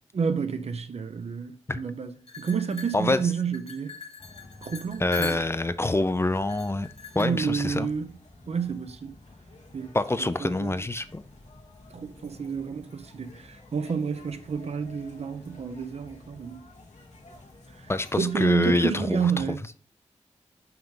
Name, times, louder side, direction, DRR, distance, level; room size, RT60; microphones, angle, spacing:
voice 1, 0.1-2.1 2.4-4.0 4.6-5.4 7.1-8.1 8.5-9.1 9.7-9.9 10.2-10.8 11.9-16.6 17.8-17.9 18.1-19.6, right 6 dB, 60° right, 0.7 m, -30 dB
sound 1, 2.3-5.8 6.3-7.2, left 5 dB, 60° left, 1.8 m, -41 dB
sound 2, 4.2-18.5, left 2 dB, 90° left, 1.7 m, -51 dB
voice 2, 5.0-6.9 7.2-7.9 9.9-11.2 17.9-19.4, left 2 dB, 20° left, 0.4 m, -26 dB
5.9 x 5.2 x 3.7 m
wide cardioid pair, 70°, 12 cm